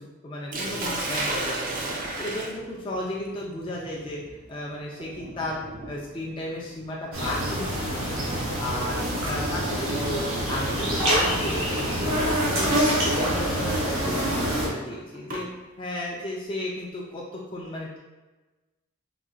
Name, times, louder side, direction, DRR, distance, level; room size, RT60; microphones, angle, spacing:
voice 1, 0.2-1.9 2.2-4.2 4.5-5.6 5.9-8.2 8.6-14.3 14.6-15.5 15.8-18.0, left 1 dB, 25° left, -4 dB, 0.3 m, -34 dB
Sink (filling or washing), 0.5-10.5 11.6-11.9 12.4-12.5 14.0-15.5, right 2 dB, 40° right, 0.4 m, -36 dB
sound 1, 7.1-14.7, equal, 85° right, 1.0 m, -26 dB
3.9 x 2.2 x 2.4 m, 1.2 s
head